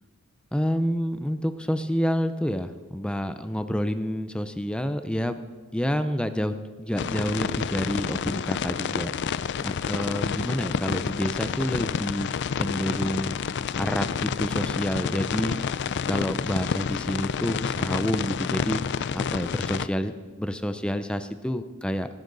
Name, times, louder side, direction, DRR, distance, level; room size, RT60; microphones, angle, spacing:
voice 1, 0.5-5.4 5.7-9.1 9.6-13.4 13.7-15.6 16.1-18.8 19.1-20.1 20.4-22.1, equal, 5° left, 10 dB, 0.6 m, -28 dB
sound 1, 7.0-19.9, left 6 dB, 55° left, 0.4 m, -29 dB
19.0 x 10.0 x 4.0 m, 1.4 s
head